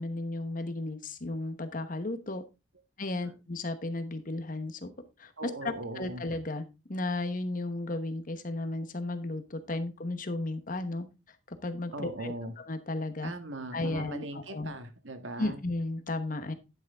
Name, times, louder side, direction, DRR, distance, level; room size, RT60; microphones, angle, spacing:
voice 1, 0.0-2.4 3.0-4.9 5.2-11.1 11.5-13.3 13.7-14.7 15.4-16.5, left 2 dB, 45° left, 10 dB, 1.1 m, -34 dB
voice 2, 5.4-6.2 11.9-12.5 13.2-15.6, right 2 dB, 75° right, 8 dB, 1.6 m, -39 dB
10.5 x 6.3 x 3.6 m, 0.27 s
head